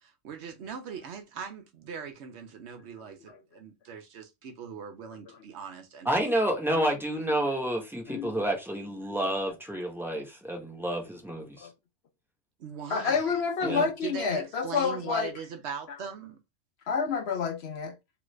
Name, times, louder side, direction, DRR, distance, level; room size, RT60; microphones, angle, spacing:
voice 1, 0.0-6.1 6.7-6.8 12.6-13.2 13.6-16.4, right 6 dB, 70° right, 0.9 m, -40 dB
voice 2, 6.0-11.7 13.6-13.9, right 1 dB, ahead, 0.7 m, -29 dB
voice 3, 12.9-15.3 16.9-17.9, left 6 dB, 65° left, 0.9 m, -29 dB
3.0 x 2.4 x 3.1 m
omnidirectional pair, 1.2 m